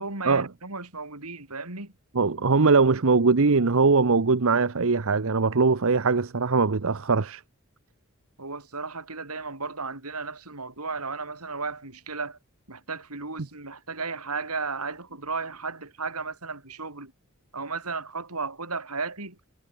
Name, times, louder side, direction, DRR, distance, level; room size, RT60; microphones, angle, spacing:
voice 1, 0.0-1.9 8.4-12.4 12.7-17.1 17.5-19.4, right 4 dB, 85° right, 6.1 m, -34 dB
voice 2, 2.1-7.4, right 4 dB, 65° right, 0.9 m, -21 dB
head